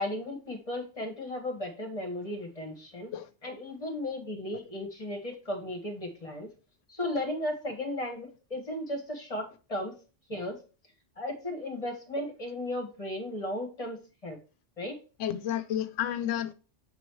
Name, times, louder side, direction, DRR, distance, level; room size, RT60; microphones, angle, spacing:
voice 1, 0.0-3.1 3.4-6.5 6.9-9.9 10.3-10.6 11.2-14.4 14.8-15.0, left 1 dB, 30° left, 1.3 m, -35 dB
voice 2, 15.2-16.5, left 11 dB, 85° left, 1.0 m, -31 dB
7.5 x 3.1 x 4.6 m
omnidirectional pair, 1.2 m